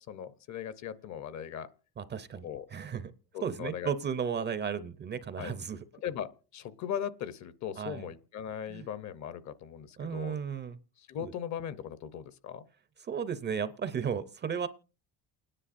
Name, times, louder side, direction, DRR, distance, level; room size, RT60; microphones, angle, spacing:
voice 1, 0.0-1.7 2.4-2.7 3.3-3.9 5.4-5.6 6.0-10.4 11.0-12.7, left 9 dB, 45° left, 15 dB, 0.7 m, -39 dB
voice 2, 2.0-3.1 3.4-5.8 7.8-8.1 8.7-8.9 10.0-10.8 11.2-11.3 13.1-14.7, right 7 dB, 25° right, 13 dB, 0.5 m, -34 dB
28.5 x 9.9 x 2.5 m, 0.37 s
cardioid pair, 130°, 40 cm